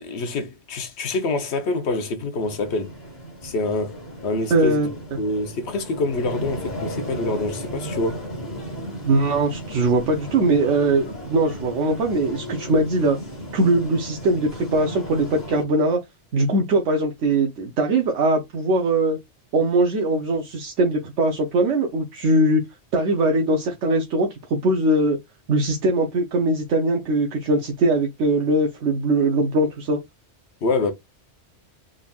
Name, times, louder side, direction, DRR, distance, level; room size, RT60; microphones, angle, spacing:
voice 1, 0.0-2.9 3.4-4.0 4.2-4.9 5.2-8.2 30.6-30.9, left 2 dB, 65° left, 1.0 m, -26 dB
sound 1, 2.4-15.6, equal, 35° left, 1.5 m, -35 dB
voice 2, 4.5-5.2 9.0-13.2 13.5-16.0 16.3-19.2 19.5-22.6 22.9-25.2 25.5-30.0, right 2 dB, 80° right, 1.1 m, -21 dB
3.8 x 3.6 x 2.3 m
omnidirectional pair, 1.2 m